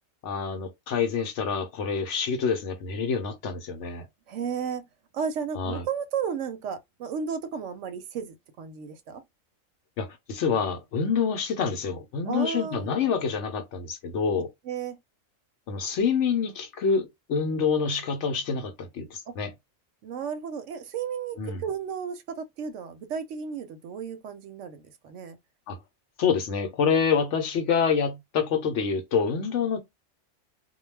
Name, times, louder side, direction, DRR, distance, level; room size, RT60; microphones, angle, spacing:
voice 1, 0.2-4.1 5.6-5.9 10.0-14.5 15.7-19.5 21.4-21.6 25.7-25.8 26.2-29.8, left 6 dB, 65° left, 0.9 m, -27 dB
voice 2, 4.3-4.8 5.1-9.2 12.2-12.9 14.3-15.0 20.0-25.4, right 7 dB, 70° right, 0.8 m, -33 dB
2.3 x 2.2 x 3.1 m
omnidirectional pair, 1.4 m